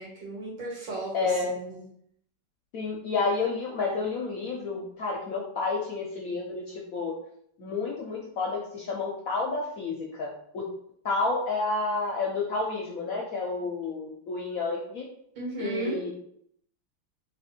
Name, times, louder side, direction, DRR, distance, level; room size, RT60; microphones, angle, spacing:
voice 1, 0.0-1.8 15.4-16.0, right 2 dB, 70° right, -5 dB, 2.6 m, -35 dB
voice 2, 1.1-1.6 2.7-7.1 7.6-10.7 11.0-15.1 15.6-16.1, left 3 dB, 65° left, -1 dB, 0.9 m, -30 dB
4.2 x 2.7 x 4.3 m, 0.69 s
omnidirectional pair, 2.1 m